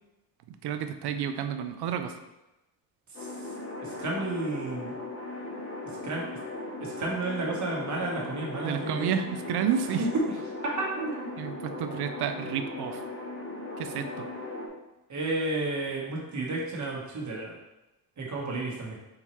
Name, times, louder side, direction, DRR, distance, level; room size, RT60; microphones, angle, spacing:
voice 1, 0.6-2.2 8.6-10.1 11.4-13.0 13.8-14.3, right 8 dB, 75° right, 8 dB, 0.5 m, -30 dB
sound 1, 3.1-14.7, left 2 dB, 35° left, 0.9 m, -38 dB
voice 2, 3.8-4.9 6.0-6.3 6.8-9.2 10.0-10.3 11.0-11.3 15.1-17.6 18.2-18.9, right 2 dB, 45° right, -3 dB, 1.2 m, -32 dB
4.2 x 3.6 x 3.1 m, 0.97 s
cardioid pair, 115°, 39 cm